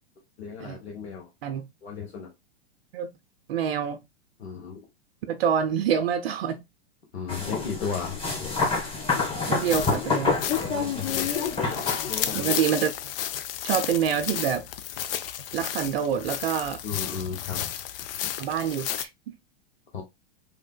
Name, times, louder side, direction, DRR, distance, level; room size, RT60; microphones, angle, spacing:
voice 1, 0.4-1.3 1.8-2.3 4.4-4.8 7.1-8.2 8.4-8.5 10.6-11.3 12.1-12.6 16.8-17.7 19.9-20.0, left 6 dB, 85° left, 1.1 m, -34 dB
voice 2, 3.5-4.0 5.3-6.6 9.5-10.5 12.3-12.9 13.6-14.7 15.5-16.8 18.4-19.1, right 8 dB, 70° right, 0.5 m, -26 dB
sound 1, 7.3-12.4, left 4 dB, 15° left, 1.5 m, -28 dB
sound 2, 9.6-19.0, left 11 dB, 60° left, 0.5 m, -32 dB
3.3 x 2.6 x 2.2 m
hypercardioid pair, 105°, 32 cm